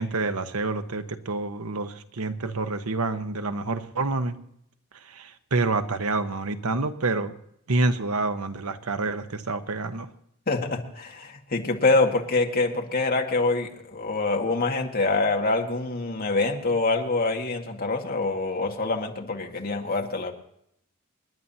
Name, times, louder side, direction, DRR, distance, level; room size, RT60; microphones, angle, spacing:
voice 1, 0.0-4.4 5.0-7.3 7.7-10.1, right 3 dB, 90° right, 1.1 m, -28 dB
voice 2, 10.5-20.3, left 3 dB, 45° left, 2.0 m, -25 dB
28.0 x 11.0 x 2.8 m
head